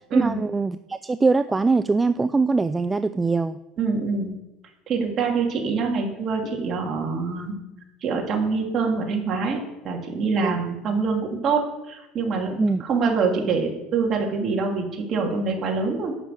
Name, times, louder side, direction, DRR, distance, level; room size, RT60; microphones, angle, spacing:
voice 1, 0.1-3.6 10.4-10.5 12.6-12.8, right 3 dB, 15° right, 11 dB, 0.3 m, -22 dB
voice 2, 3.8-4.3 4.9-7.5 8.0-16.2, right 4 dB, 40° right, 1 dB, 2.8 m, -25 dB
11.0 x 6.3 x 7.6 m, 0.96 s
supercardioid pair, 125°, 0 cm